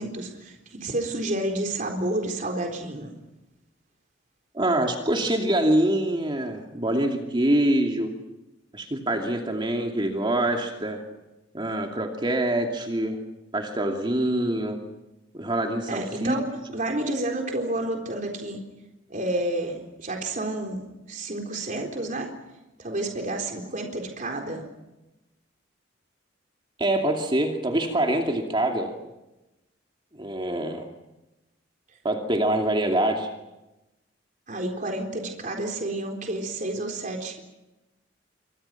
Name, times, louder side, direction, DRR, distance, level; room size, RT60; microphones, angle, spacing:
voice 1, 0.0-3.1 15.9-16.4 16.7-18.6 19.1-22.3 22.8-24.6 34.5-37.4, right 1 dB, 45° right, 2 dB, 4.0 m, -30 dB
voice 2, 4.5-8.1 8.7-11.0 11.5-13.2 13.5-14.8 15.3-16.5 26.8-28.9 30.1-30.8 32.0-33.3, right 1 dB, 25° right, 2 dB, 2.6 m, -25 dB
28.0 x 26.0 x 5.9 m, 0.98 s
head